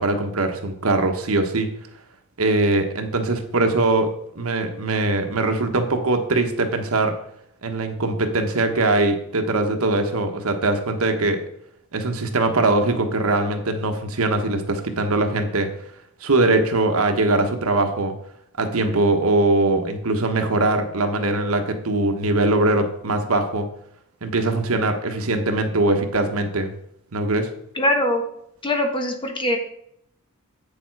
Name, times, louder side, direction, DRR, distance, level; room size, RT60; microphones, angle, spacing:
voice 1, 0.0-1.7 2.4-7.1 7.6-11.4 11.9-15.7 16.2-18.1 18.6-23.7 24.2-26.7 27.1-27.5, right 2 dB, 70° right, 6 dB, 1.2 m, -21 dB
voice 2, 27.7-28.2 28.6-29.6, left 1 dB, 25° left, 4 dB, 1.4 m, -22 dB
8.3 x 6.9 x 4.7 m, 0.73 s
head